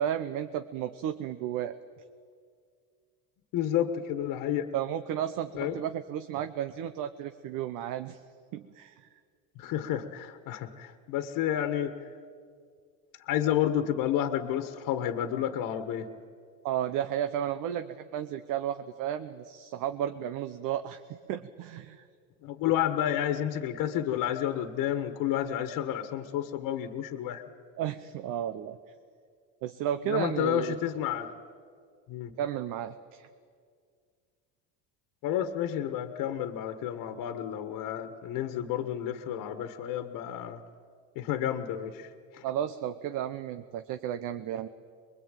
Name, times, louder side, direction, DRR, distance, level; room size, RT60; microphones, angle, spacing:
voice 1, 0.0-1.7 4.7-8.2 8.5-9.1 16.6-22.0 27.8-28.8 29.6-30.8 32.4-33.3 42.4-44.7, right 10 dB, 60° right, 9 dB, 1.0 m, -33 dB
voice 2, 3.5-4.7 5.5-5.8 9.6-11.9 13.3-16.1 22.4-27.4 30.1-31.3 32.1-32.3 35.2-40.6 41.1-42.1 42.3-42.4, left 11 dB, 60° left, 9 dB, 1.5 m, -30 dB
23.5 x 22.5 x 9.1 m, 2.1 s
cardioid pair, 140°, 36 cm